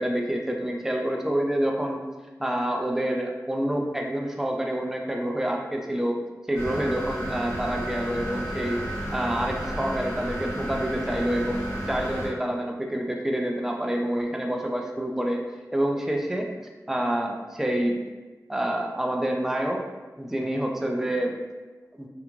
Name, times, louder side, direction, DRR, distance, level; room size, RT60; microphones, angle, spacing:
voice 1, 0.0-2.0 2.4-6.2 6.5-8.8 9.1-15.4 15.7-16.5 16.9-18.0 18.5-19.8 20.2-21.3 21.9-22.1, right 1 dB, 5° right, 1 dB, 0.3 m, -27 dB
sound 1, 6.5-12.3, right 1 dB, 45° left, 1.1 m, -32 dB
2.4 x 2.2 x 3.0 m, 1.2 s
wide cardioid pair, 65°, 6 cm